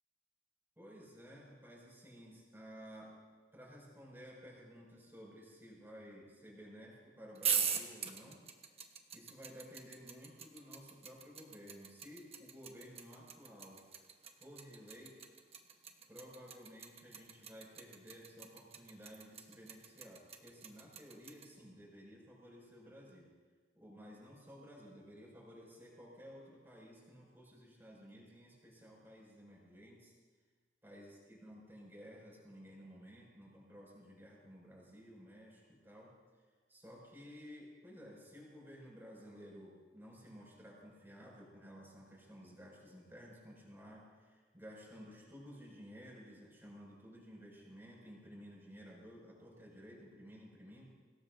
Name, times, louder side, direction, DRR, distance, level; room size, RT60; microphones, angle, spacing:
voice 1, 0.8-3.2 3.5-8.4 9.1-13.8 14.3-15.2 16.1-23.3 23.7-30.1 30.8-36.2 36.7-50.9, equal, 15° right, -4 dB, 6.4 m, -54 dB
sound 1, 7.4-21.5, right 7 dB, 35° right, 1.3 m, -40 dB
25.0 x 19.0 x 2.7 m, 1.4 s
head